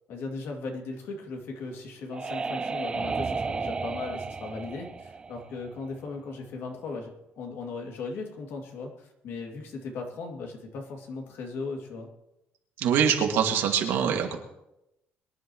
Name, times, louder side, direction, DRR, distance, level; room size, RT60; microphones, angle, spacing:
voice 1, 0.1-12.1, left 3 dB, 70° left, 1 dB, 2.7 m, -37 dB
sound 1, 1.6-6.2, right 4 dB, 25° right, 0.4 m, -33 dB
voice 2, 12.8-14.4, right 8 dB, 85° right, 2 dB, 2.3 m, -24 dB
23.0 x 11.0 x 3.2 m, 0.89 s
cardioid pair, 125°, 4 cm